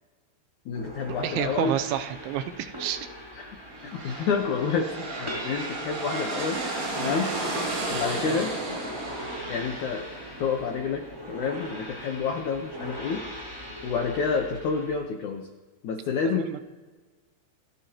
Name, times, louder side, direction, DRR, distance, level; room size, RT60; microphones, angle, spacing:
voice 1, 0.7-1.8 3.4-3.6 3.8-6.6 7.0-7.3 7.9-8.5 9.5-10.1 10.4-13.2 13.8-15.5 15.8-16.6, left 5 dB, 80° left, 2 dB, 1.7 m, -29 dB
sound 1, 0.7-15.0, equal, 5° right, 3.1 m, -41 dB
voice 2, 1.2-3.1 7.7-7.9 8.2-8.5 16.3-16.6, right 11 dB, 85° right, 9 dB, 3.0 m, -30 dB
sound 2, 3.6-11.3, right 2 dB, 55° right, 6.2 m, -33 dB
28.0 x 14.0 x 3.0 m, 1.3 s
omnidirectional pair, 5.2 m